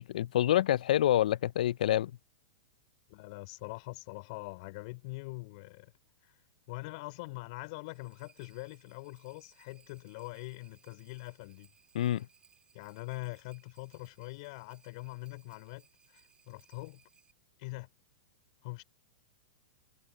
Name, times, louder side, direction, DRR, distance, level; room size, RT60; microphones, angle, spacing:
voice 1, 0.0-2.1 11.9-12.3, left 12 dB, 70° left, 0.5 m, -27 dB
voice 2, 3.1-5.9 6.2-6.3 6.7-11.7 12.7-17.0 17.6-17.9 18.6-18.8, left 25 dB, 55° left, 5.8 m, -43 dB
sound 1, 7.6-17.3, right 6 dB, 20° right, 6.5 m, -66 dB
hypercardioid pair, 110°, 4 cm